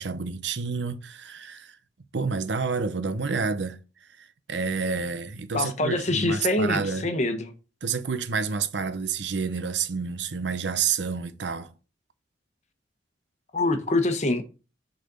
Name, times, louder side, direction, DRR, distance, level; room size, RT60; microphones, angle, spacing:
voice 1, 0.0-1.8 2.1-3.8 4.2-7.1 7.8-11.7, right 5 dB, 80° right, 0.7 m, -29 dB
voice 2, 5.5-7.5 13.5-14.4, left 2 dB, 40° left, 1.0 m, -25 dB
6.4 x 4.1 x 5.3 m
head